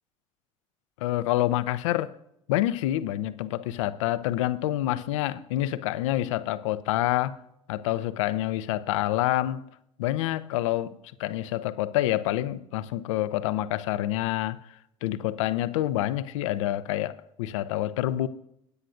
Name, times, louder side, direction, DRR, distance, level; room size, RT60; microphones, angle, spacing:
voice 1, 1.0-2.1 2.5-7.4 7.7-9.6 10.0-10.9 11.2-14.6 15.0-18.3, left 14 dB, 65° left, 0.7 m, -27 dB
21.5 x 10.0 x 2.5 m
figure-of-eight pair, 65°, 17 cm